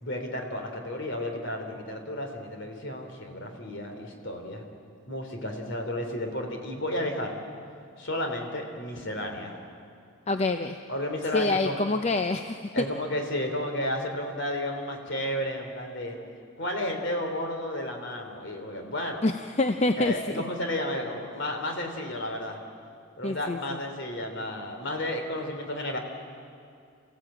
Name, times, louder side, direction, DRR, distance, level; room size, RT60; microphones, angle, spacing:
voice 1, 0.0-4.6 5.1-7.3 8.0-9.5 10.9-11.8 12.7-16.2 16.6-19.2 20.0-22.6 23.2-26.0, left 1 dB, 55° left, 3 dB, 3.1 m, -32 dB
voice 2, 10.3-10.8 11.3-12.9 19.2-20.4 23.2-23.8, left 2 dB, 30° left, 7 dB, 0.6 m, -26 dB
27.5 x 16.0 x 8.7 m, 2.3 s
head